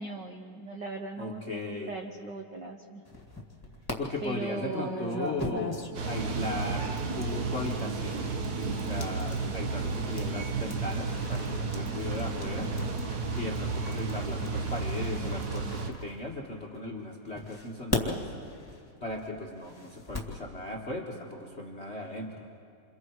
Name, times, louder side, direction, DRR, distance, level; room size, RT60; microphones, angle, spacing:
voice 1, 0.0-3.0 4.2-5.3, right 3 dB, 60° right, 2 dB, 1.1 m, -38 dB
voice 2, 1.2-1.9 4.0-6.9 7.1-8.3 8.7-12.7 13.3-18.2 19.0-22.4, left 2 dB, 30° left, -1 dB, 1.3 m, -37 dB
sound 1, 3.1-3.9 4.7-16.7 17.4-20.4, left 1 dB, 10° left, 1.6 m, -40 dB
sound 2, 5.9-15.9, right 4 dB, 90° right, 0.8 m, -32 dB
28.5 x 28.0 x 4.7 m, 2.5 s
omnidirectional pair, 3.6 m